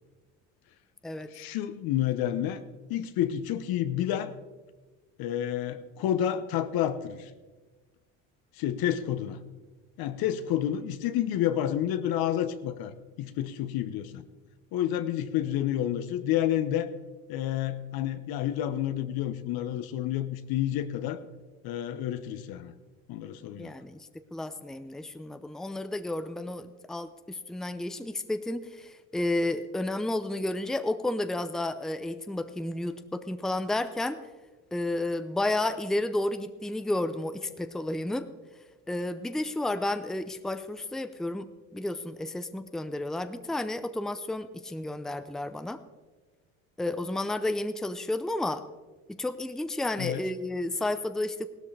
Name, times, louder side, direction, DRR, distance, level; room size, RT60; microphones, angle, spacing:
voice 1, 1.3-2.6 2.9-4.3 5.2-7.3 8.6-9.4 10.0-14.2 14.7-16.9 17.3-21.2 21.6-22.7 23.1-23.7 50.0-50.2, left 11 dB, 65° left, 12 dB, 1.0 m, -29 dB
voice 2, 23.6-34.2 34.7-38.3 38.9-41.5 41.7-45.8 46.8-48.6 49.1-51.5, left 2 dB, ahead, 11 dB, 0.7 m, -31 dB
17.0 x 13.0 x 3.4 m, 1.3 s
supercardioid pair, 75°, 39 cm